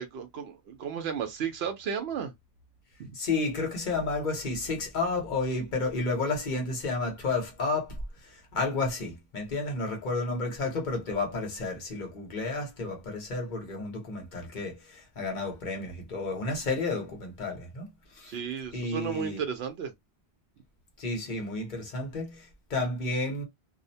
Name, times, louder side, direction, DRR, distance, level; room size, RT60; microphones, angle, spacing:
voice 1, 0.0-2.3 3.0-3.1 18.3-19.9, right 7 dB, 85° right, 0.8 m, -34 dB
voice 2, 3.1-18.4 18.7-19.4 21.0-23.4, left 3 dB, 50° left, 1.1 m, -31 dB
2.6 x 2.1 x 2.6 m
omnidirectional pair, 1.0 m